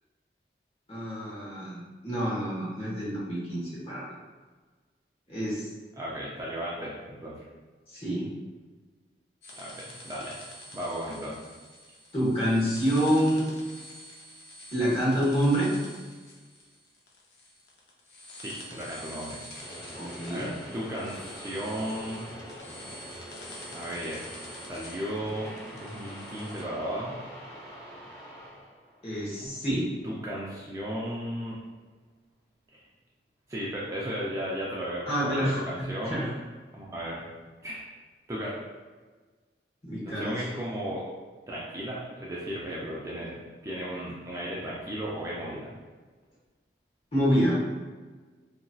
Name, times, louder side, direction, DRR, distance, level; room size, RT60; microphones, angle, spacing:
voice 1, 0.9-4.1 5.3-5.7 7.9-8.3 12.1-13.4 14.7-15.7 19.9-20.5 29.0-29.9 35.1-36.3 39.8-40.3 47.1-47.6, equal, 35° left, -8 dB, 1.0 m, -27 dB
voice 2, 6.0-7.4 9.6-10.4 10.7-11.4 18.4-19.4 20.3-22.3 23.7-24.3 24.7-27.2 29.4-29.5 30.0-31.6 32.7-32.8 33.5-36.2 36.7-37.2 37.6-37.9 38.3-38.6 40.0-41.0 41.5-45.8, equal, 20° right, -6 dB, 0.3 m, -35 dB
sound 1, 9.4-26.6, left 1 dB, 65° left, 0.5 m, -47 dB
sound 2, 19.6-29.8, equal, 15° left, 0.7 m, -44 dB
2.9 x 2.6 x 2.2 m, 1.4 s
head